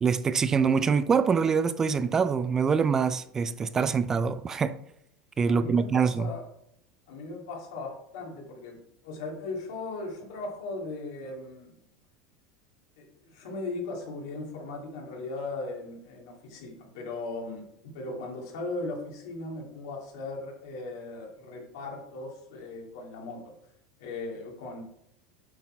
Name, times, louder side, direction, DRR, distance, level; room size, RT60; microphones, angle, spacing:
voice 1, 0.0-4.7 5.4-6.3, right 6 dB, 25° right, 0.3 m, -25 dB
voice 2, 5.5-6.4 7.1-8.8 9.0-11.7 13.0-23.5 24.0-24.8, left 3 dB, 75° left, 2.3 m, -38 dB
7.7 x 4.1 x 4.3 m
supercardioid pair, 115°, 2 cm